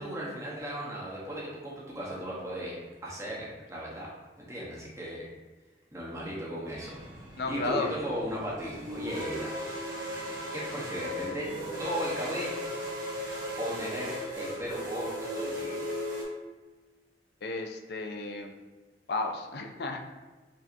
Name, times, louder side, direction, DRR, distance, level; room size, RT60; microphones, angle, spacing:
voice 1, 0.0-2.8 3.0-4.1 4.4-5.2 5.9-6.9 7.5-9.5 10.5-11.5 11.8-12.6 13.6-15.8, equal, 15° right, -6 dB, 0.9 m, -36 dB
sound 1, 6.7-16.2, equal, 50° right, 1.5 m, -37 dB
voice 2, 7.4-8.0 17.4-18.5 19.1-20.0, left 3 dB, 60° left, 4 dB, 0.4 m, -33 dB
5.4 x 2.7 x 2.6 m, 1.3 s
head